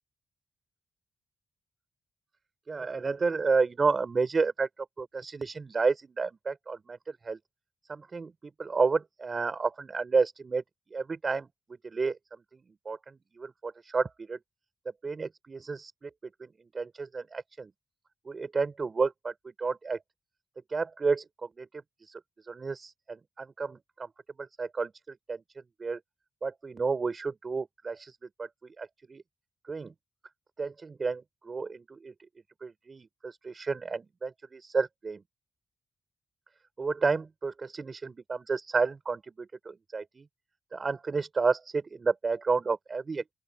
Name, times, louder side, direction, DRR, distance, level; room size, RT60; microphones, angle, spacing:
voice 1, 2.7-4.7 5.0-7.4 7.9-10.6 10.9-11.5 11.8-14.4 15.0-16.1 16.4-17.7 18.3-20.0 20.7-24.1 24.4-26.0 26.4-29.2 29.7-29.9 30.6-32.1 32.6-35.2 36.8-40.3 40.7-43.2, right 4 dB, 50° right, 5.5 m, -31 dB
open air
supercardioid pair, 50°, 0 cm